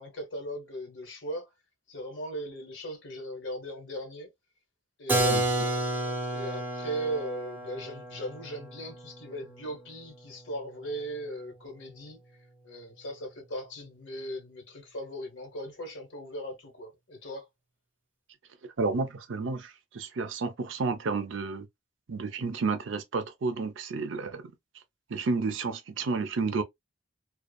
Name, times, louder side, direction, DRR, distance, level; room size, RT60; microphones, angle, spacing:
voice 1, 0.0-1.5 1.9-4.3 5.0-12.2 12.6-17.5, equal, 75° left, 1.2 m, -38 dB
Keyboard (musical), 5.1-10.7, right 2 dB, 10° right, 0.6 m, -31 dB
voice 2, 18.6-21.7 22.1-24.4 25.1-26.6, right 4 dB, 80° right, 0.5 m, -31 dB
2.5 x 2.3 x 2.3 m
head